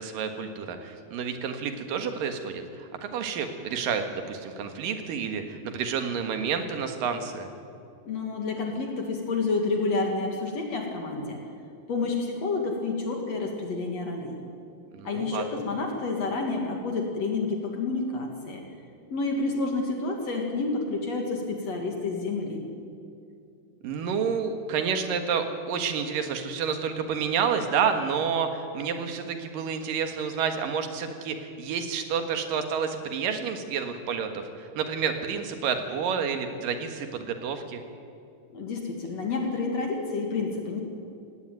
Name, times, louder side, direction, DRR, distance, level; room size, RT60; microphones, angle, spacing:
voice 1, 0.0-7.5 14.9-15.6 23.8-37.8, right 6 dB, 80° right, 6 dB, 3.3 m, -29 dB
voice 2, 8.1-11.4 11.9-14.4 15.0-18.6 19.1-22.6 38.5-40.8, left 3 dB, 55° left, 2 dB, 2.9 m, -29 dB
18.0 x 17.5 x 9.2 m, 2.5 s
omnidirectional pair, 3.9 m